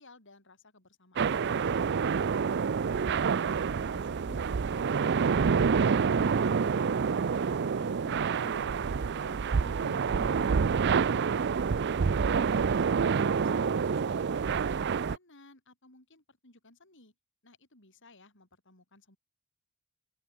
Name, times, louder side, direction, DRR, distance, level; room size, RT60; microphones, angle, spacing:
voice 1, 0.0-1.9 12.2-17.1 17.4-19.2, left 3 dB, 60° left, 7.1 m, -58 dB
sound 1, 1.2-15.2, right 6 dB, 55° right, 0.5 m, -27 dB
voice 2, 2.9-5.3 5.6-7.3 7.5-11.2, left 2 dB, 90° left, 2.6 m, -53 dB
open air
head